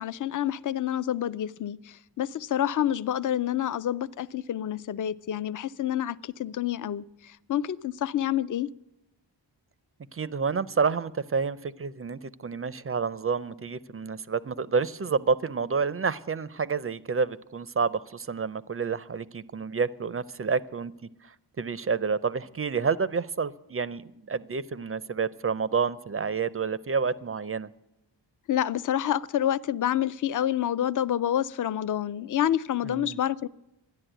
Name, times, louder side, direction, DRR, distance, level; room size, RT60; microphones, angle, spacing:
voice 1, 0.0-7.0 7.5-8.7 28.5-33.5, left 11 dB, 45° left, 0.4 m, -28 dB
voice 2, 10.1-20.9 21.2-27.7 32.8-33.2, right 5 dB, 35° right, 0.4 m, -29 dB
13.0 x 10.5 x 9.0 m
wide cardioid pair, 110°, 43 cm